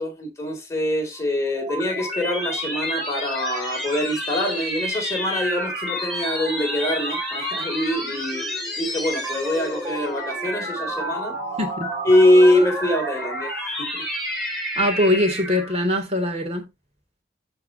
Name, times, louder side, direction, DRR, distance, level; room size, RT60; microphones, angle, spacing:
voice 1, 0.0-8.5 8.8-11.4 12.0-13.5 13.8-14.0, left 1 dB, 15° left, 3.6 m, -23 dB
sound 1, 1.2-15.8, equal, ahead, 4.3 m, -29 dB
voice 2, 11.6-11.9 14.8-16.7, left 1 dB, 35° right, 2.9 m, -22 dB
14.0 x 4.7 x 2.8 m
head